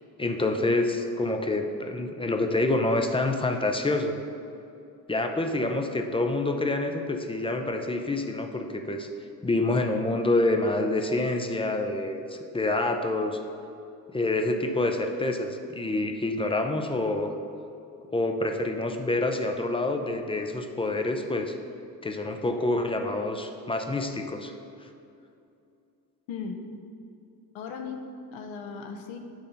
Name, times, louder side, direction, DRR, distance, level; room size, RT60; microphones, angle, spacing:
voice 1, 0.2-4.2 5.1-9.1 9.4-13.4 14.1-17.3 18.1-21.6 22.0-24.5 24.8-24.9, left 2 dB, 10° left, 5 dB, 0.6 m, -27 dB
voice 2, 26.3-26.6 27.5-29.2, left 5 dB, 65° left, 5 dB, 0.9 m, -37 dB
7.4 x 3.7 x 5.5 m, 2.6 s
hypercardioid pair, 50°, 49 cm